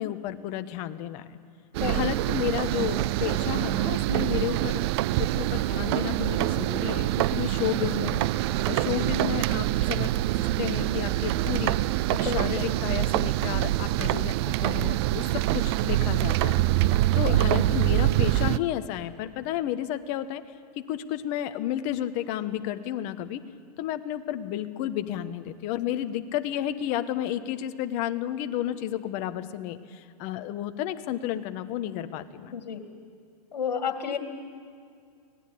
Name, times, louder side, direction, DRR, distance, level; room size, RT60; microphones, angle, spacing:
voice 1, 0.0-1.4 1.8-4.8 5.2-8.3 8.7-11.8 12.1-16.6 17.1-20.4 20.9-23.4 23.8-32.5, left 12 dB, 35° left, 10 dB, 1.2 m, -32 dB
sound 1, 1.7-18.6, right 16 dB, 40° right, 0.5 m, -25 dB
voice 2, 12.1-12.7 17.3-17.4 32.5-32.8 33.5-34.2, left 7 dB, 80° left, 6 dB, 2.4 m, -31 dB
24.5 x 18.0 x 8.6 m, 2.2 s
hypercardioid pair, 135°, 21 cm